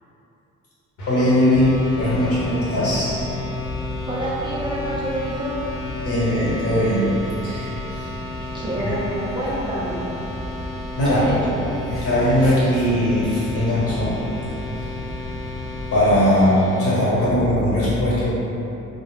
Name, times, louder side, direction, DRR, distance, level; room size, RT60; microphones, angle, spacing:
sound 1, 1.0-17.0, left 3 dB, 75° left, 0.8 m, -34 dB
voice 1, 1.1-3.3 6.0-7.1 7.4-8.1 8.8-8.9 11.0-11.5 11.9-14.2 15.9-18.3, left 1 dB, 50° left, -9 dB, 1.2 m, -20 dB
sound 2, 1.5-16.1, left 1 dB, 30° left, 0.6 m, -34 dB
voice 2, 4.1-5.6 8.5-10.0 11.0-11.6, right 1 dB, 15° right, -8 dB, 0.4 m, -27 dB
2.6 x 2.0 x 3.4 m, 2.9 s
cardioid pair, 90°, 30 cm